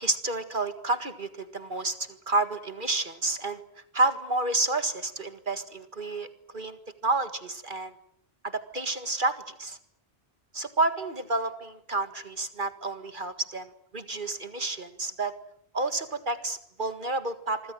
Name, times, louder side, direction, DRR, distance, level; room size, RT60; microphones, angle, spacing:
voice 1, 0.0-2.0 2.3-3.6 3.9-6.3 6.5-6.8 7.0-7.9 8.4-9.8 10.5-13.7 13.9-15.3 15.7-17.7, right 2 dB, 55° right, 10 dB, 2.0 m, -29 dB
27.5 x 25.0 x 7.7 m, 0.70 s
omnidirectional pair, 1.0 m